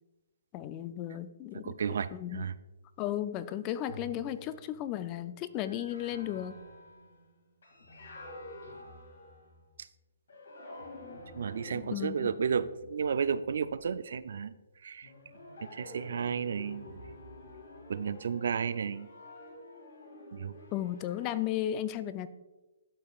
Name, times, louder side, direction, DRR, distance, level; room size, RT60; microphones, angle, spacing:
voice 1, 0.5-1.7 2.1-2.4 3.0-6.5 11.9-12.3 20.7-22.3, left 12 dB, 25° left, 14 dB, 0.3 m, -34 dB
voice 2, 1.5-2.6 9.8-9.9 11.3-14.5 14.8-15.1 15.7-17.0 17.9-19.1 20.3-20.6, right 6 dB, 65° right, 15 dB, 0.3 m, -33 dB
sound 1, 3.9-9.8 10.3-14.2 15.0-21.5, left 1 dB, 85° left, 2.3 m, -49 dB
12.0 x 5.3 x 2.4 m, 1.1 s
hypercardioid pair, 155°, 0 cm